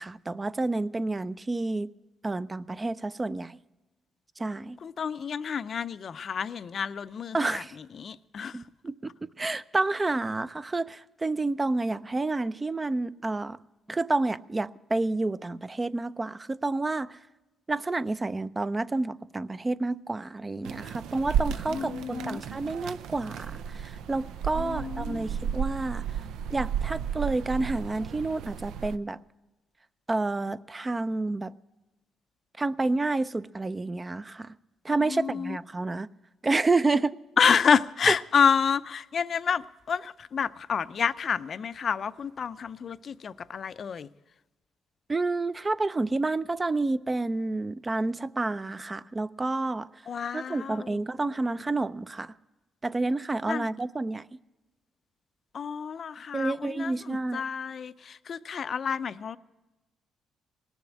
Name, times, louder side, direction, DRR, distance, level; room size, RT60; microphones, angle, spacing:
voice 1, 0.0-1.9 2.2-3.6 4.4-4.8 7.3-7.7 8.5-9.1 9.4-13.6 13.9-17.2 17.7-26.0 26.5-29.2 30.1-31.5 32.6-34.5 34.8-36.1 36.4-37.2 38.1-38.2 45.1-49.9 50.3-52.3 52.8-54.3 56.3-57.4, right 2 dB, 25° right, 0.4 m, -29 dB
voice 2, 4.8-8.6 21.7-22.4 24.5-25.2 35.0-35.6 37.4-44.1 50.1-51.0 53.5-53.7 55.5-59.4, left 7 dB, 50° left, 0.5 m, -29 dB
sound 1, 20.6-29.0, right 8 dB, 85° right, 0.5 m, -33 dB
18.5 x 7.1 x 10.0 m
cardioid pair, 90°, 0 cm